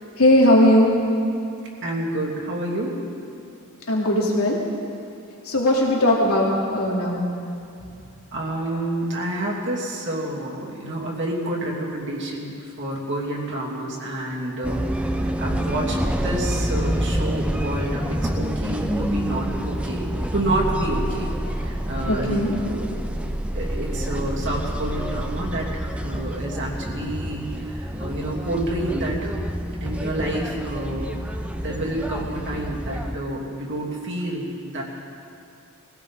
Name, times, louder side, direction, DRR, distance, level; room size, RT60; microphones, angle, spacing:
voice 1, 0.2-0.9 3.9-4.6 5.5-7.2 22.1-22.5, left 1 dB, 90° left, -3 dB, 2.8 m, -18 dB
voice 2, 1.8-3.0 7.1-7.3 8.3-23.0 23.5-29.3 29.8-31.1 31.6-34.8, right 1 dB, 55° right, -3 dB, 2.9 m, -29 dB
sound 1, 14.6-33.2, equal, 5° right, 0.6 m, -27 dB
21.5 x 16.5 x 3.7 m, 2.5 s
head